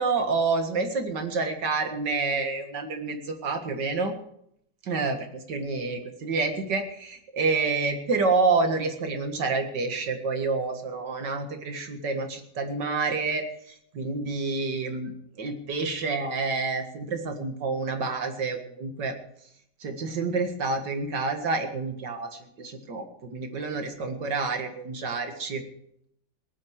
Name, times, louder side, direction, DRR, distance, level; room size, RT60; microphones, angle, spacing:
voice 1, 0.0-4.1 4.8-19.2 19.8-25.6, right 4 dB, 70° right, 6 dB, 2.4 m, -28 dB
18.0 x 9.2 x 6.4 m, 0.71 s
omnidirectional pair, 1.9 m